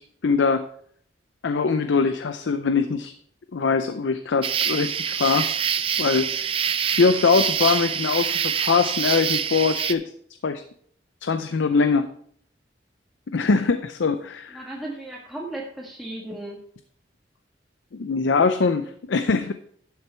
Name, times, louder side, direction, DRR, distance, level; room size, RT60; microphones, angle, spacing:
voice 1, 0.2-0.6 1.4-3.1 3.5-5.5 6.0-6.5 6.9-10.0 10.4-10.6 11.2-12.1 13.3-14.6 17.9-19.5, left 4 dB, 80° left, 10 dB, 0.5 m, -22 dB
sound 1, 4.4-9.9, right 8 dB, 30° right, 0.4 m, -25 dB
voice 2, 14.5-16.6, right 1 dB, ahead, -3 dB, 1.4 m, -35 dB
11.0 x 6.7 x 4.3 m, 0.63 s
head